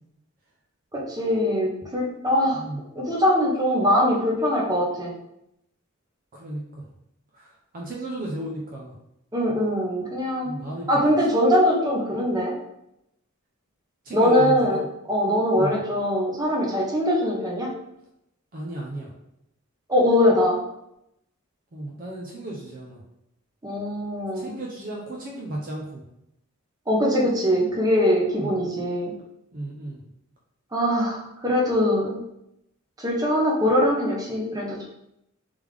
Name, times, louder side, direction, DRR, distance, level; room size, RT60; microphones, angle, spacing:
voice 1, 0.9-2.6 2.9-5.1 9.3-10.5 10.9-12.6 14.1-14.8 15.1-17.7 19.9-20.6 23.6-24.5 26.9-29.1 30.7-32.2 33.0-34.9, left 1 dB, 20° right, -3 dB, 0.9 m, -22 dB
voice 2, 2.3-2.8 6.3-6.8 7.3-9.0 10.4-11.1 14.0-14.9 15.6-15.8 18.5-19.1 21.7-23.0 24.3-26.0 28.4-28.7 29.5-30.0, right 1 dB, 45° right, -3 dB, 0.6 m, -34 dB
3.4 x 3.3 x 3.3 m, 0.82 s
head